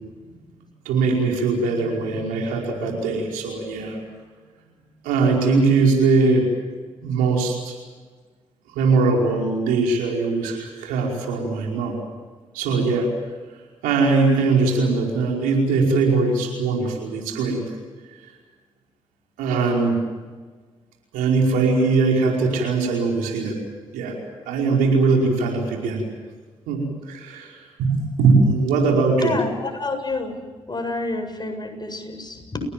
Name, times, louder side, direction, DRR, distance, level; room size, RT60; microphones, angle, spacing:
voice 1, 0.9-4.0 5.0-6.5 7.0-7.8 8.8-12.0 12.5-13.1 13.8-17.6 19.4-20.0 21.1-23.6 23.9-24.2 24.5-26.0 26.7-29.4, right 4 dB, 80° right, 0 dB, 5.2 m, -21 dB
voice 2, 29.2-30.4 30.7-32.6, left 2 dB, 30° left, 5 dB, 7.7 m, -29 dB
30.0 x 18.5 x 7.6 m, 1.4 s
hypercardioid pair, 40°, 14 cm